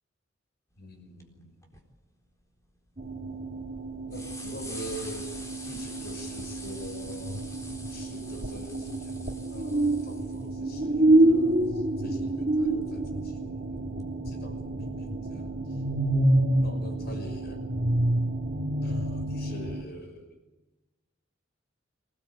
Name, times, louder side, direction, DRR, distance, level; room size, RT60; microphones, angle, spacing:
voice 1, 0.8-1.6 4.1-5.3 5.6-7.5 7.9-9.2 9.5-15.8 16.6-17.6 18.8-20.4, equal, 55° left, 6 dB, 6.0 m, -45 dB
sound 1, 0.9-1.0 1.2-1.3 1.6-1.8 2.4-3.1 3.7-3.8 4.1-10.5 12.6-12.7 14.0-14.1, left 1 dB, 15° left, 3.9 m, -45 dB
sound 2, 3.0-19.8, right 1 dB, 40° right, 2.4 m, -28 dB
26.5 x 18.0 x 8.1 m, 1.1 s
head